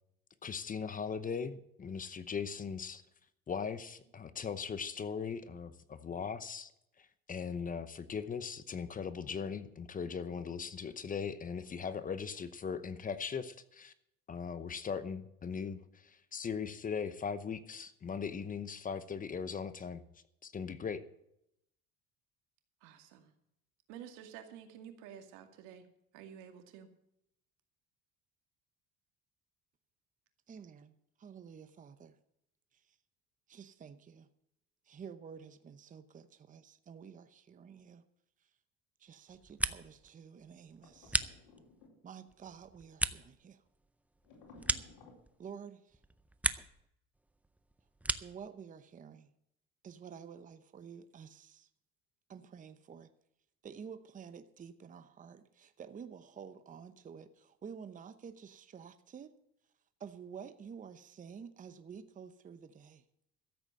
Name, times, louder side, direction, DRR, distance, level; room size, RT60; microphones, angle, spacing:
voice 1, 0.4-3.0 3.5-6.7 7.0-13.9 14.3-20.0 20.4-21.0, left 6 dB, 25° left, 14 dB, 0.9 m, -39 dB
voice 2, 22.8-23.3 23.9-25.9 26.1-26.9, right 9 dB, 85° right, 6 dB, 2.3 m, -51 dB
voice 3, 30.5-32.2 32.9-33.0 33.5-34.3 34.9-38.0 39.0-41.2 42.0-43.6 45.4-46.0 48.2-49.3 49.8-51.7 52.3-53.1 53.6-59.3 60.0-63.0, right 7 dB, 25° right, 11 dB, 0.8 m, -50 dB
sound 1, 39.3-40.1 40.4-41.9 42.3-45.6 45.9-46.8 47.1-48.5, right 2 dB, 5° right, 0.5 m, -37 dB
sound 2, 40.8-42.3 44.2-45.2, left 3 dB, 85° left, 4.5 m, -57 dB
13.5 x 8.0 x 7.6 m, 0.78 s
cardioid pair, 125°, 31 cm